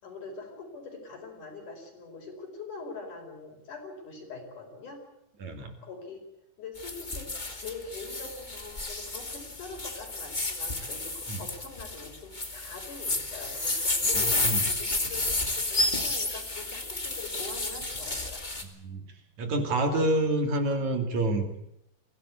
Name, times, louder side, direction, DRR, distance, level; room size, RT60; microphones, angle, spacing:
voice 1, 0.0-5.0 5.8-6.3 6.6-18.4, left 3 dB, 70° left, 3 dB, 6.3 m, -43 dB
voice 2, 5.4-5.7 11.3-11.4 14.4-14.7 18.8-19.0 19.4-21.7, right 1 dB, 60° right, 5 dB, 3.9 m, -27 dB
sound 1, 6.8-18.6, left 2 dB, 15° left, 1.9 m, -31 dB
23.0 x 16.5 x 8.5 m, 0.80 s
omnidirectional pair, 3.7 m